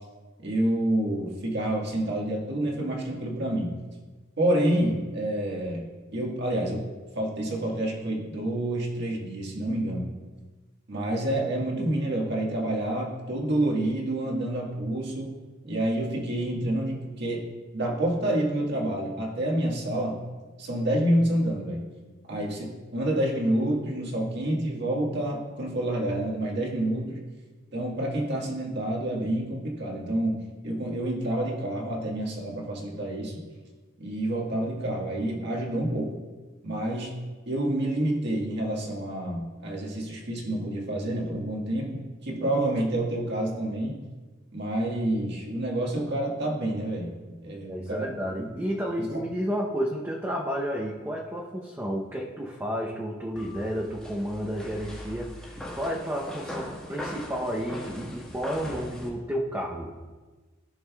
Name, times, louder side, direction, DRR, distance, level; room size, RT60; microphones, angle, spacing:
voice 1, 0.4-3.7 4.4-6.9 7.1-10.1 10.9-15.3 15.6-20.2 20.6-21.9 22.3-27.2 27.7-33.4 34.0-36.1 36.6-37.2 37.5-44.0 44.5-48.1 49.0-49.1, right 1 dB, 55° right, -1 dB, 1.6 m, -28 dB
voice 2, 47.7-59.9, equal, 10° right, -3 dB, 0.7 m, -31 dB
sound 1, 53.4-59.1, left 1 dB, 5° left, 1.5 m, -40 dB
14.5 x 6.4 x 2.3 m, 1.3 s
head